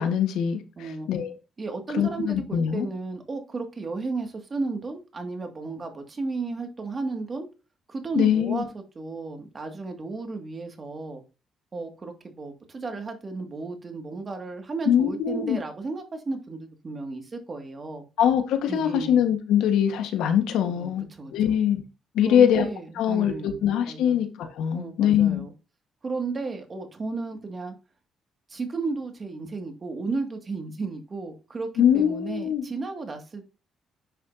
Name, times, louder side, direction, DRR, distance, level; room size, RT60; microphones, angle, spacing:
voice 1, 0.0-1.3 1.9-2.9 8.1-8.6 14.9-15.6 18.2-21.1 21.3-21.8 22.1-22.7 23.0-25.4 31.8-32.6, left 9 dB, 90° left, 1.5 m, -23 dB
voice 2, 0.8-1.1 1.6-7.5 7.9-11.2 11.7-18.0 18.7-19.2 20.7-21.3 22.2-23.6 23.9-24.2 24.7-25.5 26.0-27.7 28.5-33.5, right 3 dB, 35° right, 2.3 m, -33 dB
10.0 x 6.0 x 2.8 m
cardioid pair, 90°, 0 cm